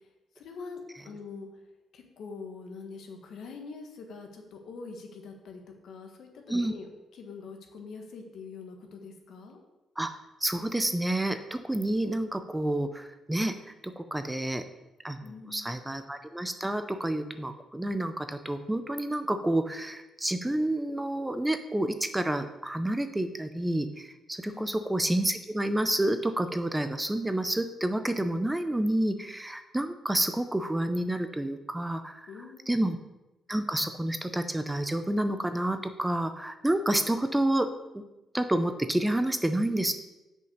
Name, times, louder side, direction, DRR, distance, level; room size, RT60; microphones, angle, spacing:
voice 1, 0.3-1.5 1.9-9.6 15.2-15.7 24.4-24.8 32.3-32.9, left 4 dB, 70° left, 3 dB, 1.4 m, -44 dB
voice 2, 10.0-13.5 13.8-14.6 15.0-32.3 32.7-33.0 33.5-37.7 37.9-38.0 38.3-39.9, right 1 dB, 10° right, 9 dB, 0.6 m, -29 dB
6.3 x 5.4 x 6.6 m, 1.0 s
cardioid pair, 90°, 0 cm